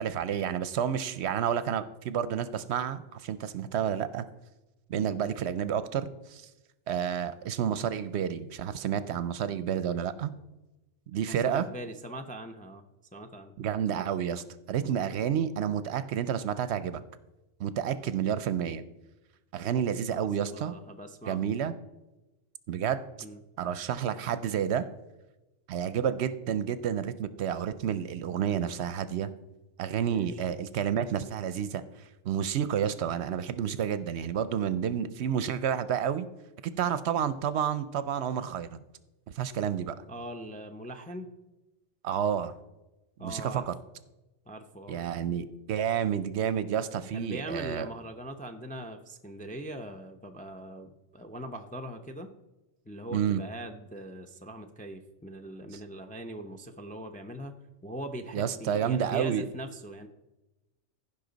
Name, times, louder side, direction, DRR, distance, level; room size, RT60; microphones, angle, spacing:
voice 1, 0.0-4.3 4.9-6.5 6.9-10.3 11.1-11.6 13.6-17.0 17.6-18.8 19.5-20.7 21.3-21.7 22.7-23.0 23.6-24.8 25.7-29.3 29.8-31.8 32.2-36.3 36.6-38.7 39.3-40.0 42.0-42.5 43.2-43.7 44.9-47.9 53.1-53.4 55.7-55.8 58.3-59.5, right 8 dB, 70° right, 14 dB, 0.8 m, -30 dB
voice 2, 11.1-12.8 13.1-13.5 20.1-21.5 23.2-23.4 30.0-30.5 40.1-41.3 43.2-43.7 44.5-45.0 47.1-52.3 52.9-57.5 57.8-60.1, right 1 dB, 10° left, 4 dB, 0.4 m, -41 dB
15.0 x 5.5 x 3.9 m, 1.0 s
omnidirectional pair, 1.2 m